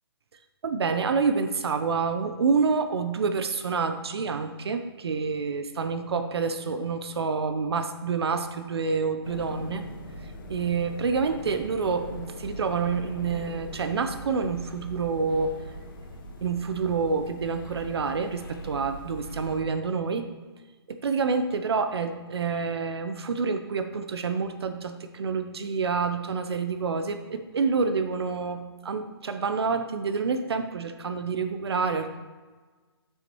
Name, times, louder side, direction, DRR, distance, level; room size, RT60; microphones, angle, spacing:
voice 1, 0.6-9.9 10.5-15.5 16.4-20.3 20.9-32.2, right 5 dB, 70° right, 8 dB, 0.7 m, -28 dB
sound 1, 9.2-19.6, equal, 50° left, 1.5 m, -41 dB
9.2 x 8.0 x 3.1 m, 1.4 s
hypercardioid pair, 170°, 14 cm